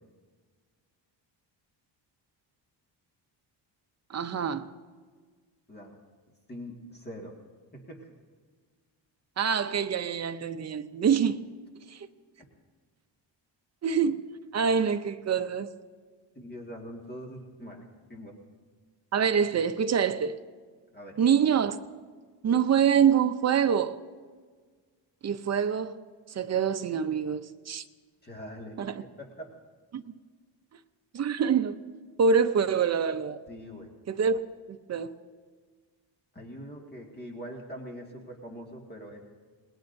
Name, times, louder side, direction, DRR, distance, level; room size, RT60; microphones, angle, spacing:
voice 1, 4.1-4.7 9.4-11.4 11.9-12.1 13.8-14.2 14.5-15.7 19.1-20.3 21.2-21.8 22.4-24.0 25.2-26.0 26.3-27.8 28.8-29.0 29.9-30.0 31.1-31.8 32.2-33.4 34.1-34.4 34.7-35.1, right 7 dB, 35° right, 0.6 m, -25 dB
voice 2, 6.5-7.3 7.7-8.1 16.4-18.3 20.9-21.2 28.2-28.9 29.2-29.5 33.5-33.9 36.3-39.2, equal, 20° left, 1.8 m, -43 dB
27.0 x 20.0 x 2.6 m
cardioid pair, 140°, 45 cm